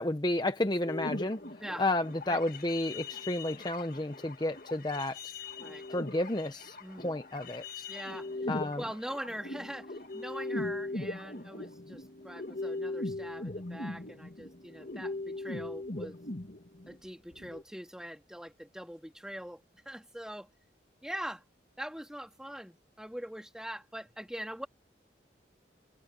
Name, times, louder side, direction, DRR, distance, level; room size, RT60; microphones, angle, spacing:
voice 1, 0.0-1.4 1.8-5.2 5.9-7.8 8.5-8.8, left 1 dB, 25° left, 0.8 m, -31 dB
sound 1, 0.8-17.0 17.3-17.6, left 2 dB, 50° left, 2.0 m, -40 dB
voice 2, 7.9-8.5 8.8-16.2 16.9-19.6 19.9-20.5 21.0-21.4 21.8-24.7, equal, 5° right, 2.2 m, -42 dB
head